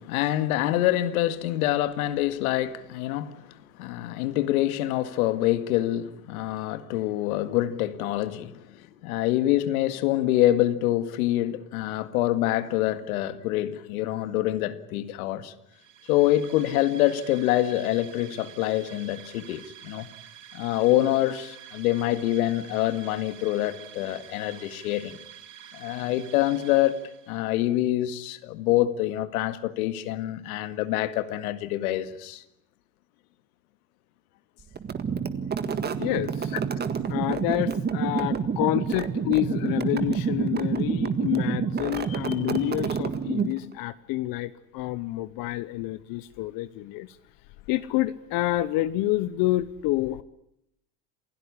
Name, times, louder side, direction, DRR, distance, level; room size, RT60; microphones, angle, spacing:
voice 1, 0.0-15.5 16.1-20.1 20.5-25.2 25.7-27.0 27.3-32.4, left 14 dB, 85° left, 2.0 m, -26 dB
sound 1, 15.7-27.5, right 10 dB, 45° right, 6.6 m, -48 dB
sound 2, 34.7-43.7, right 6 dB, 25° right, 1.7 m, -28 dB
voice 2, 36.0-36.5 37.1-47.2 47.7-50.2, left 16 dB, 55° left, 1.0 m, -28 dB
28.0 x 16.5 x 9.9 m
supercardioid pair, 135°, 42 cm